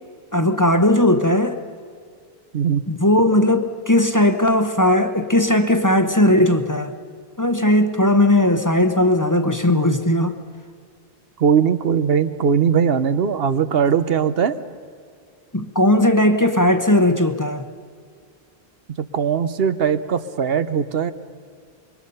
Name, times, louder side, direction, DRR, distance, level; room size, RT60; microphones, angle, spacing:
voice 1, 0.3-1.6 2.9-6.9 7.4-10.4 15.5-17.6, left 1 dB, 20° left, 7 dB, 0.9 m, -17 dB
voice 2, 11.4-14.6 19.0-21.1, right 7 dB, 70° right, 11 dB, 1.0 m, -19 dB
27.0 x 23.0 x 5.6 m, 2.1 s
omnidirectional pair, 1.0 m